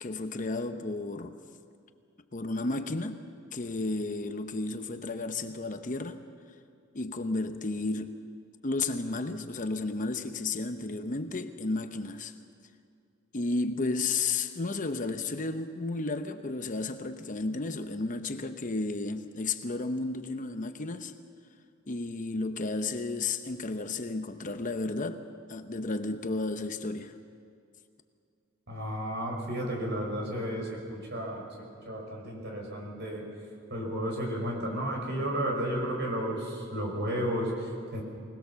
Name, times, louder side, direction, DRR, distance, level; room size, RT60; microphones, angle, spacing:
voice 1, 0.0-1.4 2.3-3.2 3.5-6.2 6.9-8.2 8.6-12.3 13.3-21.1 21.9-27.1, left 3 dB, 40° left, 0.8 m, -33 dB
voice 2, 28.7-33.3 33.7-38.0, equal, 55° right, 5.2 m, -33 dB
25.0 x 19.0 x 6.9 m
head